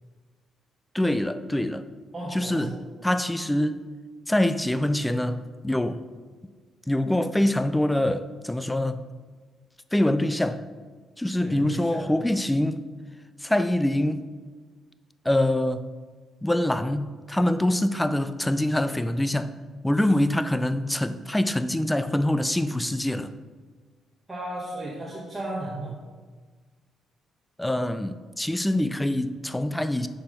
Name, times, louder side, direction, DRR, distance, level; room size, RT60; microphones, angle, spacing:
voice 1, 0.9-1.9 2.3-2.8 3.0-3.8 4.3-6.0 6.9-9.0 9.9-10.6 11.2-12.8 13.4-14.3 15.3-15.8 16.4-19.5 19.8-23.3 27.6-30.1, left 1 dB, 10° left, 12 dB, 0.4 m, -24 dB
voice 2, 2.1-2.7 11.4-12.1 24.3-25.9, right 1 dB, 20° right, -6 dB, 1.6 m, -34 dB
5.6 x 4.4 x 5.2 m, 1.5 s
cardioid pair, 90°, 0 cm